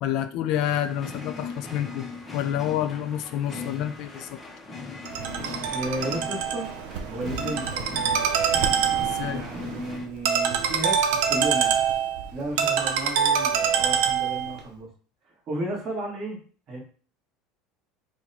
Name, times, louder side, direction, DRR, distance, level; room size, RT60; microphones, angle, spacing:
voice 1, 0.0-2.1 2.3-4.4 9.0-9.4, left 11 dB, 50° left, 9 dB, 0.4 m, -28 dB
sound 1, 0.5-10.1, left 4 dB, 15° left, 0.7 m, -39 dB
Ringtone, 5.1-14.6, right 7 dB, 70° right, 0.6 m, -25 dB
voice 2, 5.7-6.7 7.0-7.9 9.3-11.8 12.3-14.9 15.2-16.4 16.7-16.8, right 1 dB, 30° right, -1 dB, 1.4 m, -33 dB
4.7 x 2.2 x 4.1 m, 0.42 s
cardioid pair, 165°, 0 cm